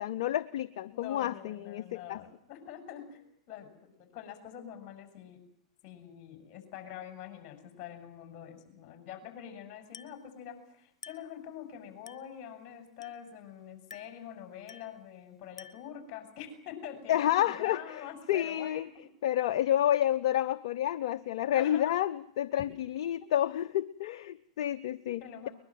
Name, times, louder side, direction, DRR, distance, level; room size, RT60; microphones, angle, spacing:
voice 1, 0.0-2.2 17.1-18.9 19.2-25.5, left 12 dB, 65° left, 11 dB, 0.8 m, -30 dB
voice 2, 0.9-5.4 5.8-19.1 21.5-21.9 23.0-23.3 25.2-25.5, left 9 dB, 45° left, 7 dB, 6.8 m, -45 dB
Glass, 9.9-10.3 11.0-11.4 12.1-12.4 13.0-13.4 13.9-14.3 14.7-15.0 15.6-16.0, left 6 dB, 90° left, 1.0 m, -51 dB
22.0 x 21.0 x 7.8 m, 0.73 s
hypercardioid pair, 105°, 3 cm